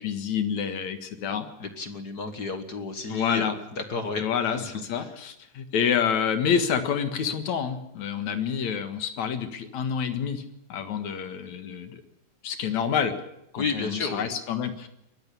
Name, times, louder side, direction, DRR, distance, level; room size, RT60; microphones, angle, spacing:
voice 1, 0.0-1.5 3.1-3.6 4.2-10.4 10.7-12.0 12.4-13.2 13.5-14.9, left 7 dB, 70° left, 9 dB, 2.9 m, -28 dB
voice 2, 1.6-3.5 3.7-4.2 4.6-4.7 13.6-14.3, left 4 dB, 45° left, 9 dB, 1.5 m, -31 dB
22.5 x 14.5 x 8.4 m, 0.83 s
omnidirectional pair, 3.5 m